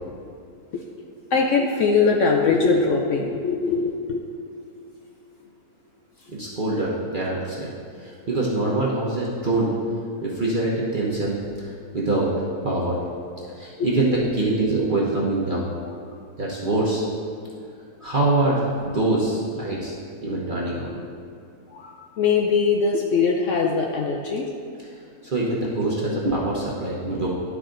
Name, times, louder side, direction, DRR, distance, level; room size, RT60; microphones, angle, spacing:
voice 1, 1.3-4.2 13.8-13.9 21.7-24.5, left 5 dB, 65° left, 1 dB, 0.7 m, -21 dB
voice 2, 6.3-7.7 8.0-9.7 10.2-12.3 12.6-13.0 13.5-15.7 16.4-17.0 18.0-19.9 20.2-20.9 24.8-24.9 25.2-27.3, right 2 dB, 40° right, -5 dB, 0.9 m, -24 dB
11.0 x 4.8 x 3.8 m, 2.5 s
omnidirectional pair, 1.7 m